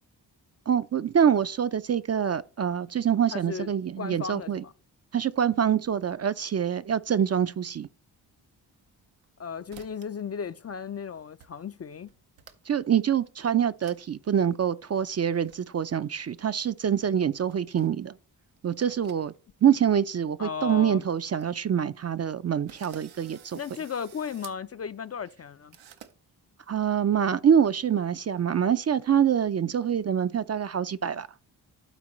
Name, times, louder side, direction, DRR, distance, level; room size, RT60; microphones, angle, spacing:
voice 1, 0.7-4.6 5.1-7.9 12.7-18.1 18.6-19.3 19.6-23.6 26.7-31.3, right 8 dB, 35° right, 0.4 m, -25 dB
voice 2, 3.3-3.7 4.0-4.7 9.4-12.1 20.4-21.0 23.5-25.8, left 6 dB, 35° left, 0.4 m, -35 dB
sound 1, 8.8-9.4 9.7-10.2 10.5-11.0 11.4-11.5 11.8-12.8 13.2-13.3 13.8-14.0 14.3-14.4 15.0-15.6 16.9-17.9 18.5-19.6 19.9-20.0 20.6-20.7 20.9-21.0 21.2-21.5 22.0-22.1 22.7-24.6 25.7-26.1, right 9 dB, 90° right, 0.7 m, -51 dB
12.0 x 4.3 x 3.0 m
supercardioid pair, 45°, 45 cm